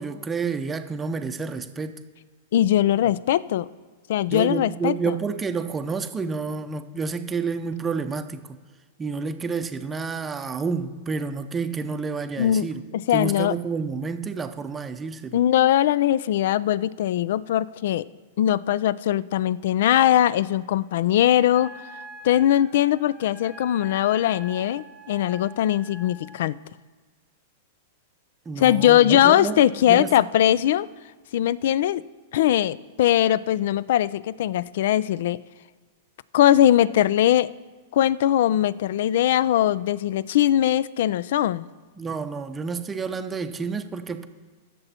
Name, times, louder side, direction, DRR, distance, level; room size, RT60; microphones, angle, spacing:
voice 1, 0.0-2.0 4.3-8.4 9.0-12.8 13.1-15.4 28.5-30.1 42.0-44.3, right 5 dB, 15° right, 0.6 m, -29 dB
voice 2, 2.5-3.7 4.1-5.2 12.4-12.7 12.9-13.5 15.3-18.1 18.4-21.7 22.2-26.6 28.6-30.9 31.3-32.0 32.3-35.4 36.3-37.5 37.9-41.7, left 12 dB, 70° left, 0.3 m, -20 dB
Wind instrument woodwind instrument, 21.5-26.4, equal, 10° left, 1.5 m, -44 dB
15.0 x 6.9 x 4.3 m
hypercardioid pair, 125°, 0 cm